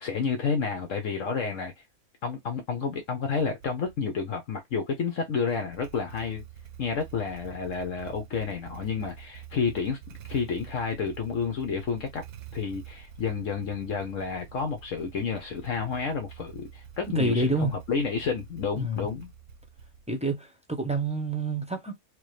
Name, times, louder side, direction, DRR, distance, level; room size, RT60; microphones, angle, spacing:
voice 1, 0.0-1.7 2.2-6.4 6.8-10.0 10.3-12.2 12.5-19.3, left 5 dB, 65° left, 1.1 m, -30 dB
Motorcycle / Engine starting, 3.4-4.0 5.4-20.3, right 9 dB, 85° right, 1.2 m, -47 dB
voice 2, 17.1-17.8 18.8-19.1 20.1-22.0, right 2 dB, 5° right, 0.7 m, -28 dB
4.7 x 2.3 x 3.1 m
omnidirectional pair, 1.5 m